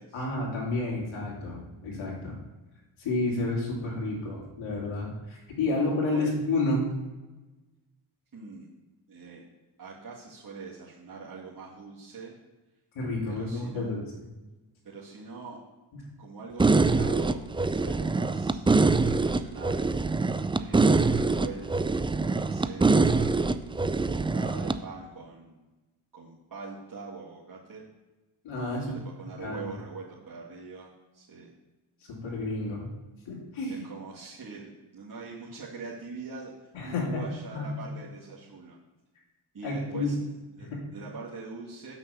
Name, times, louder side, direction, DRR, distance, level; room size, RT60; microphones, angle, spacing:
voice 1, 0.1-2.4 3.0-6.9 12.9-14.0 28.4-29.0 29.4-29.7 32.1-32.9 33.3-33.9 36.7-37.2 37.5-37.6 39.6-40.1 40.6-40.8, left 2 dB, 75° left, -5 dB, 2.5 m, -30 dB
voice 2, 8.3-8.7 9.1-9.4 9.8-12.4 13.3-13.9 14.8-15.6 16.2-19.9 20.6-23.3 23.7-25.6 26.1-27.8 28.8-31.5 33.7-38.8 39.5-40.2 40.5-41.9, right 4 dB, 40° right, -7 dB, 2.2 m, -43 dB
sound 1, 16.6-24.8, right 3 dB, 10° right, 0.4 m, -24 dB
5.9 x 5.8 x 6.8 m, 1.1 s
supercardioid pair, 50°, 49 cm